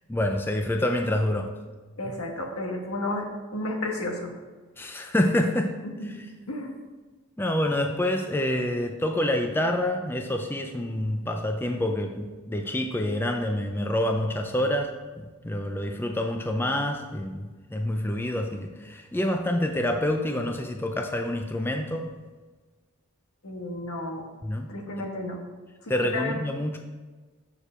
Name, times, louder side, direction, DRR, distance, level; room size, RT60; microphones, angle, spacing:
voice 1, 0.1-1.5 4.8-5.8 6.0-6.2 7.4-22.1 24.4-24.7 25.9-26.8, left 1 dB, 10° left, 4 dB, 0.4 m, -27 dB
voice 2, 2.0-4.3 5.8-6.7 23.4-24.3 24.7-25.4 25.8-26.3, left 2 dB, 80° left, 2 dB, 1.3 m, -32 dB
7.0 x 6.7 x 4.3 m, 1.3 s
head